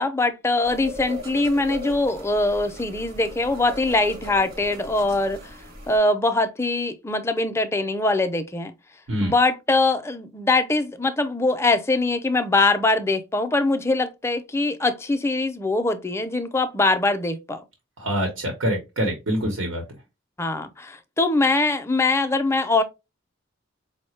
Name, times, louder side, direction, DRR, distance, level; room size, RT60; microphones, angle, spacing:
voice 1, 0.0-5.4 5.9-8.7 9.2-17.6 20.4-22.8, left 2 dB, 15° left, 0.4 m, -22 dB
sound 1, 0.6-6.0, left 1 dB, 50° right, 0.9 m, -38 dB
voice 2, 18.0-19.8, equal, 90° right, 1.0 m, -25 dB
4.8 x 2.1 x 3.1 m
head